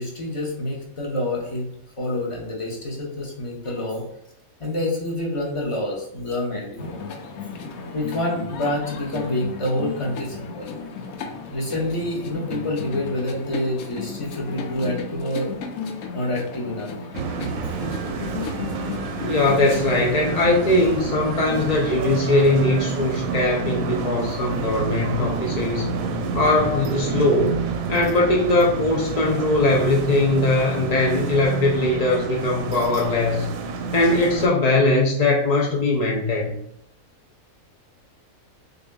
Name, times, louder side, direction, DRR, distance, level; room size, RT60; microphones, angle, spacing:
voice 1, 0.0-1.7 2.0-4.0 4.6-7.0 7.9-10.7 11.5-15.6 16.1-16.9 17.6-17.7, left 1 dB, 25° left, -3 dB, 1.0 m, -27 dB
Central Park Jazz, 6.8-22.2, left 5 dB, 85° left, 1.1 m, -35 dB
sound 1, 17.1-34.5, right 4 dB, 85° right, 1.0 m, -29 dB
voice 2, 19.2-25.9 26.3-27.6 27.9-33.5 33.9-36.6, left 2 dB, 65° left, -1 dB, 0.4 m, -20 dB
6.6 x 2.5 x 2.3 m, 0.75 s
omnidirectional pair, 1.5 m